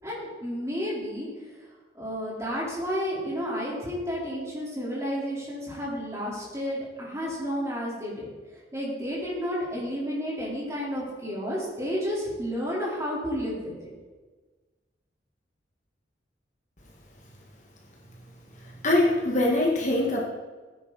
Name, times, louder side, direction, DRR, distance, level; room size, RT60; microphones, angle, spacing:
voice 1, 0.0-1.3 1.9-8.3 8.7-13.9, equal, 15° right, -6 dB, 4.2 m, -31 dB
voice 2, 18.8-20.2, left 1 dB, 40° left, -2 dB, 1.9 m, -22 dB
17.0 x 9.9 x 4.2 m, 1.3 s
head